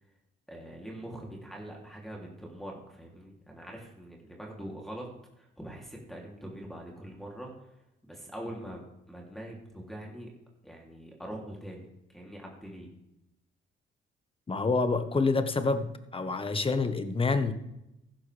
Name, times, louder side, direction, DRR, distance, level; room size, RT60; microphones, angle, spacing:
voice 1, 0.5-5.1 5.4-7.5 8.0-10.3 10.6-12.9, right 1 dB, ahead, -3 dB, 3.1 m, -43 dB
voice 2, 14.5-17.5, left 3 dB, 25° left, 9 dB, 1.3 m, -27 dB
14.5 x 12.0 x 3.5 m, 0.87 s
cardioid pair, 90°, 20 cm